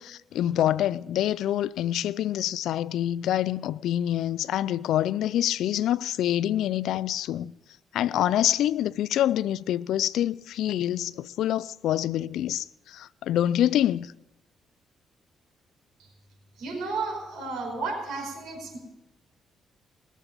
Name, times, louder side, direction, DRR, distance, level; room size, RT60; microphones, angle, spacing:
voice 1, 0.0-7.5 7.9-14.1, left 12 dB, 80° left, 0.4 m, -26 dB
voice 2, 16.6-18.8, right 3 dB, 75° right, 4.9 m, -33 dB
19.0 x 7.3 x 6.8 m
cardioid pair, 100°, 0 cm